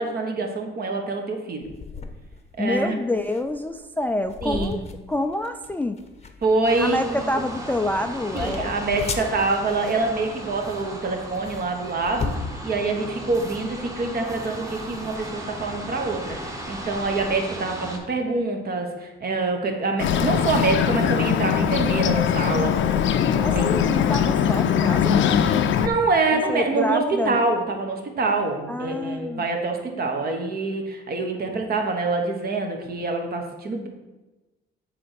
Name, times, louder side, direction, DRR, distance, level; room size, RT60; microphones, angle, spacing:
voice 1, 0.0-1.7 2.6-3.0 4.4-4.8 6.4-7.3 8.3-22.7 23.5-23.7 25.8-33.9, right 3 dB, 50° right, 3 dB, 1.2 m, -25 dB
sound 1, 1.6-17.3, left 4 dB, 30° left, 0.7 m, -38 dB
voice 2, 2.6-4.8 5.1-6.0 6.8-8.7 23.4-25.3 26.3-27.4 28.7-29.4, left 1 dB, 10° left, 7 dB, 0.3 m, -27 dB
sound 2, 6.6-18.0, right 1 dB, 15° right, 1.3 m, -36 dB
Bird, 20.0-25.9, left 8 dB, 75° left, 0.5 m, -21 dB
7.5 x 3.3 x 5.8 m, 1.1 s
cardioid pair, 90°, 20 cm